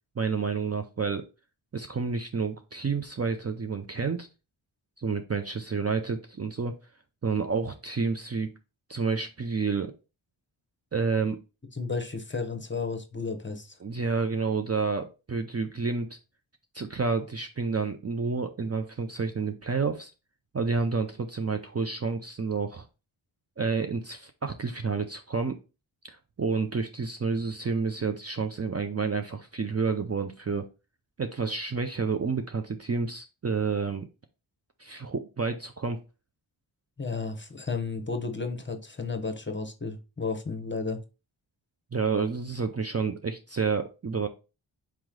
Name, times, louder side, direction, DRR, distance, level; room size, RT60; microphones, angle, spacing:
voice 1, 0.2-1.3 1.7-4.3 5.0-6.7 7.2-8.5 8.9-9.9 10.9-11.4 13.8-16.2 16.7-20.1 20.5-22.9 23.6-25.6 26.0-30.7 31.2-34.1 34.8-36.0 41.9-44.3, right 5 dB, 30° right, 6 dB, 0.5 m, -29 dB
voice 2, 11.7-13.7 37.0-41.0, left 4 dB, 25° left, 7 dB, 0.9 m, -33 dB
4.7 x 3.1 x 3.7 m, 0.30 s
cardioid pair, 50°, 49 cm